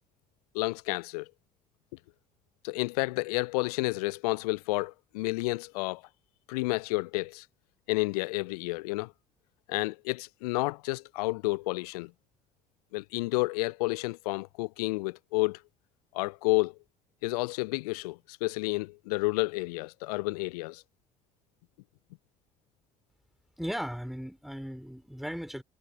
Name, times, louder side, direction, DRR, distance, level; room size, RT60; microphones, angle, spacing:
voice 1, 0.5-1.3 2.6-6.0 6.5-7.4 7.9-9.1 9.7-12.1 12.9-15.6 16.1-16.7 17.2-20.8, left 23 dB, 70° left, 0.9 m, -30 dB
voice 2, 23.6-25.6, equal, ahead, 5.8 m, -37 dB
figure-of-eight pair, 50°, 20 cm